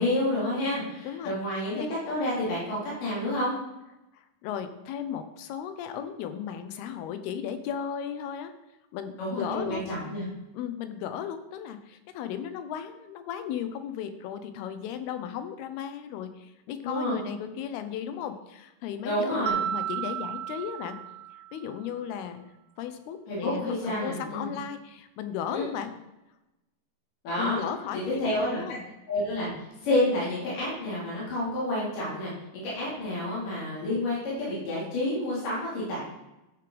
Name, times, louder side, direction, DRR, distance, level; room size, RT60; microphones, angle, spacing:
voice 1, 0.0-3.6 9.2-10.2 16.8-17.2 19.0-19.6 23.3-24.5 25.5-25.6 27.2-27.6 27.9-28.6 29.1-29.5 29.8-36.0, left 1 dB, 60° left, -7 dB, 5.5 m, -29 dB
voice 2, 1.0-1.9 4.1-8.5 8.9-9.9 10.5-21.0 21.5-22.5 22.8-25.9 27.4-28.9, left 9 dB, 90° left, 10 dB, 2.9 m, -36 dB
Mallet percussion, 19.5-21.8, right 10 dB, 85° right, 1.6 m, -33 dB
13.0 x 6.9 x 5.1 m, 0.97 s
omnidirectional pair, 4.4 m